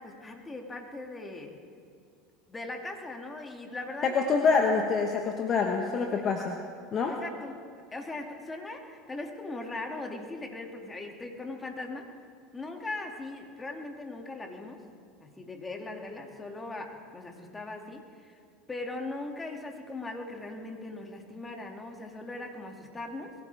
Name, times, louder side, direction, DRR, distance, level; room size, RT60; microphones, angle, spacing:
voice 1, 0.0-1.6 2.5-4.4 7.1-7.7 7.9-12.1 12.5-14.8 15.2-18.4 18.7-23.3, left 2 dB, 20° left, 2 dB, 2.4 m, -39 dB
voice 2, 4.0-6.6 6.9-7.2, left 5 dB, 40° left, 3 dB, 1.3 m, -26 dB
22.0 x 16.0 x 3.6 m, 2.2 s
hypercardioid pair, 80°, 0 cm